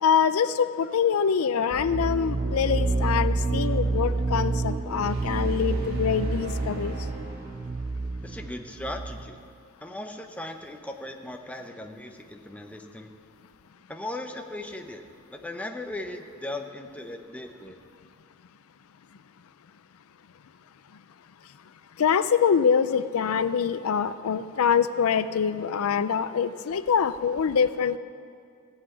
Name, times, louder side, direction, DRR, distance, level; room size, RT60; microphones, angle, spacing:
voice 1, 0.0-6.9 22.0-28.0, left 7 dB, 85° left, 13 dB, 0.4 m, -24 dB
sound 1, 1.7-9.4, right 3 dB, 25° right, 0.3 m, -29 dB
sound 2, 5.0-8.1, right 2 dB, 50° right, 1.7 m, -35 dB
voice 2, 8.2-9.4 9.8-13.1 13.9-15.0 15.3-17.8, left 1 dB, 5° left, 4 dB, 0.7 m, -38 dB
16.0 x 5.8 x 8.1 m, 2.3 s
head